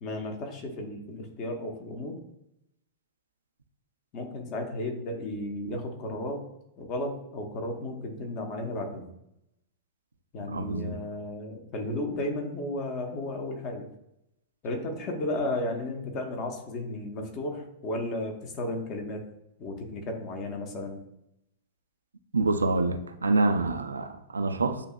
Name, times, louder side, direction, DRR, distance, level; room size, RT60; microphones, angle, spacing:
voice 1, 0.0-2.2 4.1-6.4 6.8-9.1 10.3-13.9 14.6-19.2 19.6-21.0, left 1 dB, 35° left, 1.0 m, -34 dB
voice 2, 10.5-11.0 22.3-24.8, right 3 dB, 75° right, 0.4 m, -26 dB
8.0 x 2.8 x 2.3 m
figure-of-eight pair, 95°, 0 cm